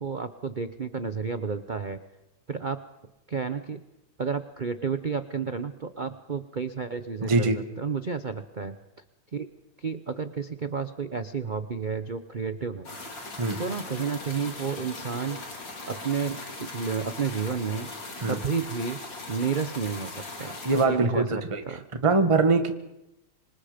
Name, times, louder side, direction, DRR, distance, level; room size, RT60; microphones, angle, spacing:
voice 1, 0.0-2.0 2.5-2.8 3.3-3.8 4.2-8.8 9.3-9.5 9.8-12.9 13.6-15.4 15.9-17.9 18.2-19.0 19.3-20.6 20.8-21.8, right 5 dB, 90° right, 10 dB, 0.4 m, -31 dB
voice 2, 7.2-7.6 13.4-13.6 18.2-18.4 20.6-22.7, right 3 dB, 15° right, 7 dB, 1.5 m, -23 dB
sound 1, 12.8-20.8, left 2 dB, 60° left, 4.2 m, -39 dB
26.0 x 25.5 x 5.2 m, 0.89 s
omnidirectional pair, 2.2 m